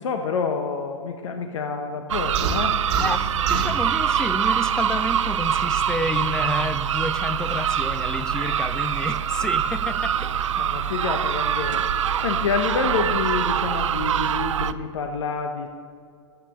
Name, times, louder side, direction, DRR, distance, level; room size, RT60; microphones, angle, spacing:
voice 1, 0.0-2.7 10.6-15.7, left 5 dB, 75° left, 0.9 m, -28 dB
sound 1, 2.1-14.7, right 9 dB, 85° right, 0.5 m, -24 dB
sound 2, 2.3-3.8, right 4 dB, 40° right, 2.2 m, -28 dB
voice 2, 3.0-10.3, left 2 dB, 5° left, 0.4 m, -30 dB
12.5 x 8.4 x 6.8 m
hypercardioid pair, 120°, 16 cm